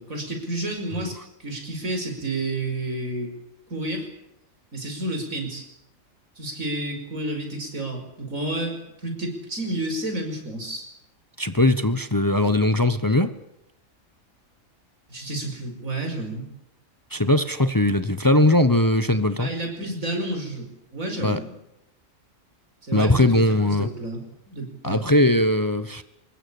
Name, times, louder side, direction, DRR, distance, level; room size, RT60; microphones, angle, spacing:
voice 1, 0.0-3.3 3.7-4.1 4.7-5.6 6.4-10.9 15.1-16.5 19.4-21.5 22.8-25.0, right 1 dB, 90° right, 5.7 m, -30 dB
voice 2, 11.4-13.3 17.1-19.5 21.2-21.4 22.9-23.9 24.8-26.0, left 1 dB, 15° left, 0.9 m, -20 dB
25.0 x 21.0 x 8.6 m
omnidirectional pair, 1.4 m